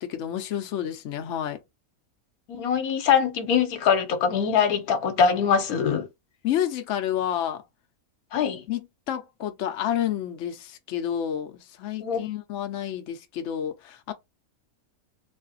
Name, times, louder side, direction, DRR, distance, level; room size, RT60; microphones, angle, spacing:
voice 1, 0.0-1.6 6.4-7.6 8.7-14.1, left 10 dB, 65° left, 0.9 m, -30 dB
voice 2, 2.5-6.1 8.3-8.6 12.0-12.3, left 7 dB, 85° left, 1.3 m, -23 dB
3.4 x 2.4 x 3.9 m
omnidirectional pair, 1.5 m